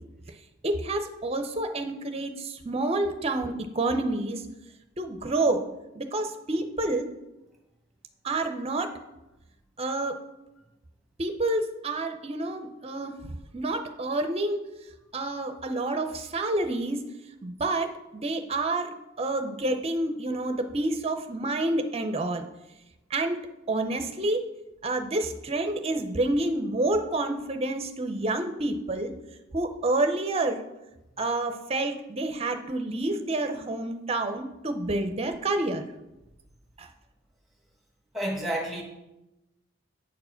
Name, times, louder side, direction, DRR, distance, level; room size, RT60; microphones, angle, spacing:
voice 1, 0.6-4.5 5.0-5.6 5.9-7.1 8.2-8.9 9.8-10.2 11.2-13.2 13.5-14.6 15.1-17.0 17.4-22.5 23.1-23.4 23.7-24.5 24.8-29.1 29.5-30.6 31.2-35.8 36.8-36.9, right 2 dB, 25° right, 8 dB, 0.6 m, -28 dB
voice 2, 38.1-38.8, right 1 dB, ahead, 0 dB, 1.3 m, -29 dB
8.5 x 4.7 x 5.7 m, 0.97 s
head